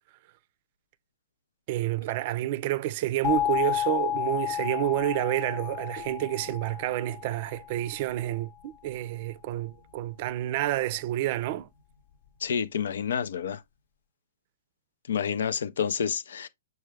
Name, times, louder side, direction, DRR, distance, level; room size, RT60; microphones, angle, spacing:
voice 1, 1.7-11.7, right 14 dB, 45° right, 0.5 m, -29 dB
sound 1, 3.2-8.0, left 11 dB, 55° left, 0.8 m, -31 dB
voice 2, 12.4-13.6 15.1-16.5, left 7 dB, 70° left, 0.4 m, -29 dB
6.2 x 2.2 x 3.3 m
hypercardioid pair, 120°, 0 cm